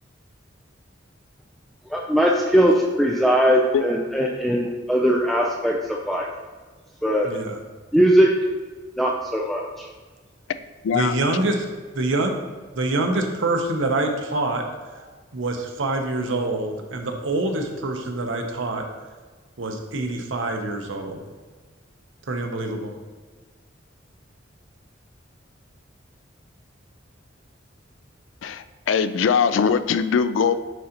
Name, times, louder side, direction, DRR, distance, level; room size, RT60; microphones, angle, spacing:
voice 1, 1.9-5.8 6.1-6.3 7.0-7.3 7.9-8.3 9.0-9.9, equal, ahead, -1 dB, 0.4 m, -20 dB
voice 2, 7.2-7.6 10.9-11.6 11.9-12.3 12.7-14.6 15.3-18.9 19.6-21.2 22.3-22.9, right 2 dB, 75° right, 3 dB, 0.8 m, -25 dB
voice 3, 10.8-11.2 28.4-30.6, left 6 dB, 70° left, 12 dB, 0.3 m, -21 dB
9.2 x 3.8 x 2.9 m, 1.4 s
head